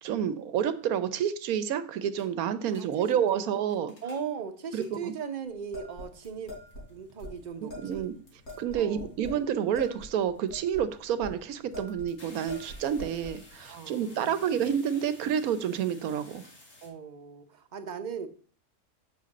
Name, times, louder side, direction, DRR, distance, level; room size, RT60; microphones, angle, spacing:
voice 1, 0.0-3.9 4.7-5.1 7.6-8.1 8.6-16.4, right 8 dB, 80° right, 13 dB, 1.2 m, -29 dB
sound 1, 2.2-2.3 2.6-3.2 3.6-4.3 4.6-5.3 5.8-16.9, left 2 dB, 60° left, 2.8 m, -55 dB
voice 2, 2.8-3.1 3.3-3.4 4.0-6.6 6.9-8.1 8.7-9.1 13.7-14.4 16.8-18.3, right 6 dB, 40° right, 8 dB, 0.8 m, -38 dB
sound 2, 5.7-6.9 7.2-7.3 7.7-8.0 8.5-9.4 9.7-11.4 11.7-12.1 12.5-13.4, left 1 dB, 85° left, 4.5 m, -43 dB
7.5 x 6.4 x 4.1 m, 0.43 s
omnidirectional pair, 1.5 m